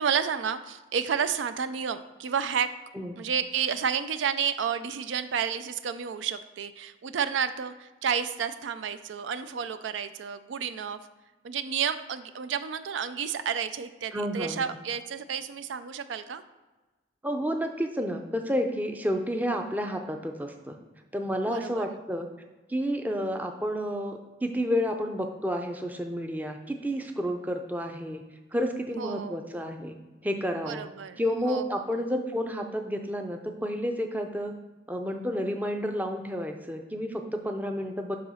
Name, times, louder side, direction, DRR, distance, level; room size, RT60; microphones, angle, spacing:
voice 1, 0.0-2.8 3.2-11.0 11.4-16.4 21.5-21.9 29.0-29.4 30.6-32.0, right 7 dB, 90° right, 12 dB, 0.4 m, -31 dB
voice 2, 14.1-14.8 17.2-20.8 21.1-22.3 22.7-28.2 28.5-30.0 30.2-30.9 31.2-34.5 34.9-38.2, equal, 10° right, 4 dB, 0.5 m, -30 dB
7.6 x 2.9 x 5.5 m, 1.2 s
head